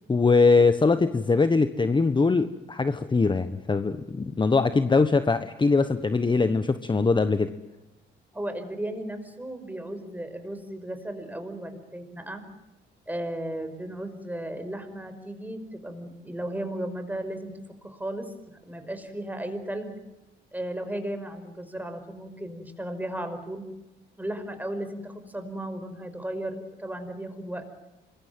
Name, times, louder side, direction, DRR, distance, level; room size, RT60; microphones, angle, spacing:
voice 1, 0.1-7.5, left 4 dB, 25° left, 10 dB, 1.3 m, -22 dB
voice 2, 8.3-12.5 13.1-17.5 17.8-18.3 18.7-20.0 20.5-23.6 24.2-27.7, right 1 dB, 10° right, 8 dB, 5.4 m, -35 dB
26.0 x 22.0 x 7.8 m, 1.0 s
cardioid pair, 90°, 20 cm